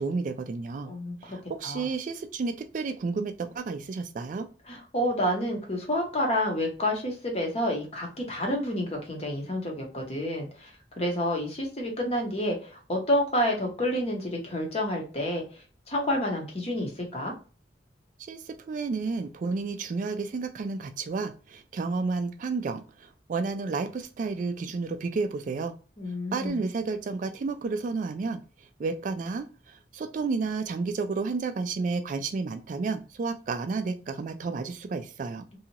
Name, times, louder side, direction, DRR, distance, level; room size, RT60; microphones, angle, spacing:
voice 1, 0.0-0.9 1.2-4.5 18.3-25.7 26.3-28.4 28.8-35.4, right 4 dB, 45° right, 8 dB, 0.3 m, -31 dB
voice 2, 0.8-1.4 1.6-1.8 4.7-10.7 11.0-15.4 15.9-17.3 26.0-26.6, left 1 dB, 35° left, 1 dB, 0.9 m, -29 dB
2.7 x 2.4 x 2.8 m, 0.35 s
head